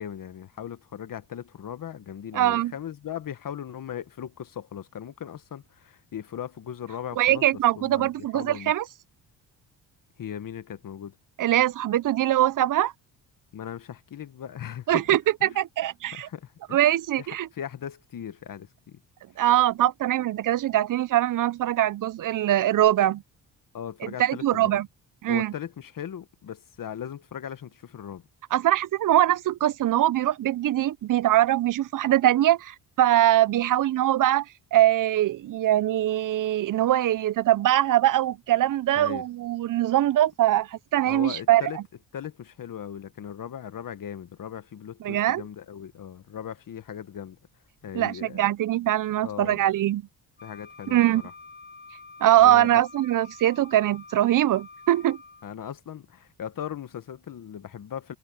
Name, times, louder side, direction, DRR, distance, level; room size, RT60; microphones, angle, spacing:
voice 1, 0.0-8.7 10.2-11.1 13.5-15.0 15.4-15.6 16.1-16.8 17.2-19.0 23.7-24.8 25.3-28.3 38.9-39.2 41.0-41.8 42.1-47.4 47.8-48.4 49.2-49.6 50.4-51.3 52.4-52.8 55.4-58.1, left 9 dB, 55° left, 1.6 m, -38 dB
voice 2, 2.3-2.7 7.2-8.8 11.4-12.9 14.9-16.3 16.7-17.5 19.4-23.2 24.0-24.9 25.2-25.5 28.5-34.5 34.7-41.8 45.0-45.4 47.9-50.0 50.9-51.2 52.2-55.2, right 13 dB, 50° right, 0.6 m, -22 dB
Wind instrument woodwind instrument, 50.4-55.5, left 4 dB, 25° left, 7.0 m, -47 dB
supercardioid pair, 70°, 41 cm